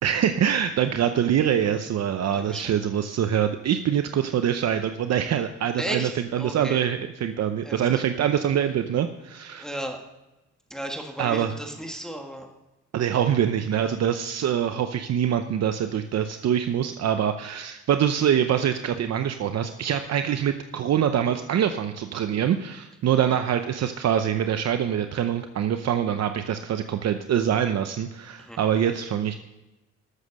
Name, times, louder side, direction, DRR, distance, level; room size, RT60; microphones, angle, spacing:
voice 1, 0.0-9.7 11.2-11.5 12.9-29.4, right 9 dB, 60° right, 8 dB, 0.8 m, -24 dB
voice 2, 2.3-2.7 5.8-6.9 7.6-8.0 9.5-10.0 10.7-12.5 28.4-28.6, right 1 dB, ahead, 2 dB, 1.6 m, -35 dB
13.0 x 7.3 x 6.5 m, 1.0 s
cardioid pair, 90°, 30 cm